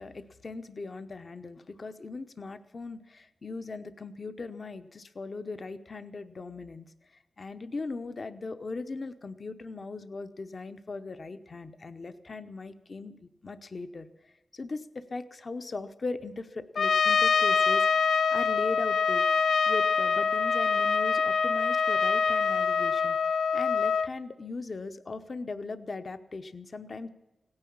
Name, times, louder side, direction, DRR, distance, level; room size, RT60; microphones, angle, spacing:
voice 1, 0.0-6.9 7.4-17.9 18.3-19.3 19.7-23.2 23.5-27.1, left 3 dB, 40° left, 10 dB, 0.8 m, -39 dB
Trumpet, 16.8-24.1, left 5 dB, 85° left, 0.5 m, -25 dB
17.0 x 9.7 x 8.6 m, 0.99 s
wide cardioid pair, 160°, 0 cm